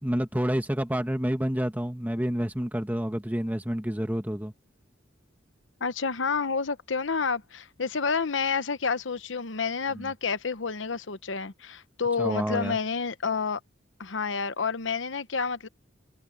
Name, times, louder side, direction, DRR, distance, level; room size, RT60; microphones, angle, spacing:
voice 1, 0.0-4.5 10.0-10.1 12.2-12.8, equal, 10° right, 1.4 m, -28 dB
voice 2, 5.8-13.6 14.0-15.7, left 5 dB, 75° left, 1.0 m, -29 dB
head